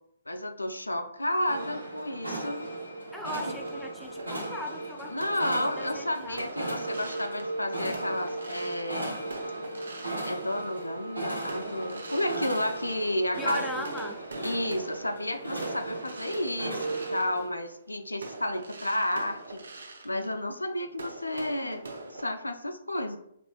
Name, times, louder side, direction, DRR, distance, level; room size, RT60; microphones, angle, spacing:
voice 1, 0.3-2.7 3.5-3.6 5.1-9.2 10.2-13.8 14.4-21.8 22.1-23.2, left 1 dB, 85° left, 6 dB, 0.4 m, -32 dB
sound 1, 1.5-17.5, right 2 dB, 80° right, 1.2 m, -36 dB
voice 2, 3.1-5.1 5.4-6.4 13.4-14.2, left 1 dB, 5° left, 2 dB, 0.3 m, -38 dB
sound 2, 4.0-10.9 11.4-13.4 13.8-22.3, right 2 dB, 65° right, 0.6 m, -44 dB
4.2 x 3.0 x 2.3 m, 0.72 s
figure-of-eight pair, 125°, 0 cm